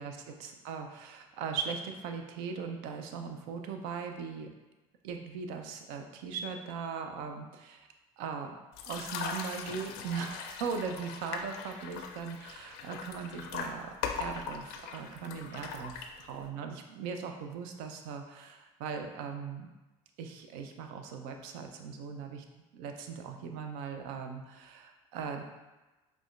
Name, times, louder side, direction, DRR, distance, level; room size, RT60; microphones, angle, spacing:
voice 1, 0.0-4.5 5.0-7.9 8.2-8.6 8.9-19.7 20.2-22.4 22.7-25.4, right 6 dB, 65° right, 5 dB, 0.5 m, -39 dB
sound 1, 8.7-16.5, left 6 dB, 60° left, 0.4 m, -40 dB
4.8 x 2.1 x 2.4 m, 1.1 s
hypercardioid pair, 70°, 18 cm